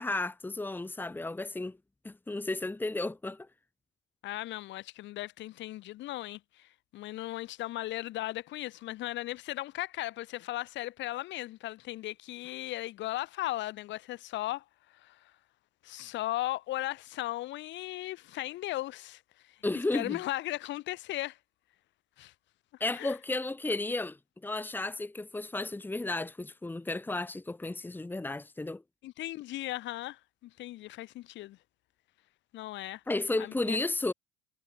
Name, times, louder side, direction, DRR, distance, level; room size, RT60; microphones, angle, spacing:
voice 1, 0.0-1.8 2.0-3.5 19.6-20.2 22.8-24.2 24.4-28.8 33.1-34.1, left 2 dB, 10° left, 2.3 m, -33 dB
voice 2, 4.2-14.6 14.9-15.2 15.8-19.2 19.9-21.4 22.2-22.3 22.9-23.1 29.0-31.6 32.5-33.0 33.4-33.8, left 16 dB, 60° left, 5.6 m, -37 dB
supercardioid pair, 105°, 21 cm